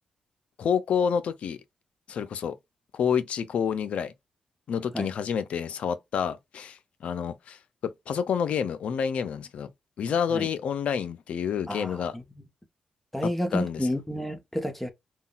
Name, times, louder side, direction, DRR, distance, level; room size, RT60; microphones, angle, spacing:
voice 1, 0.6-1.6 2.1-2.6 2.9-4.1 4.7-7.6 7.8-9.7 10.0-12.2 13.2-13.9, left 7 dB, 75° left, 0.5 m, -28 dB
voice 2, 11.7-12.2 13.1-14.9, equal, 10° left, 1.0 m, -30 dB
3.7 x 2.3 x 2.4 m
cardioid pair, 65°, 2 cm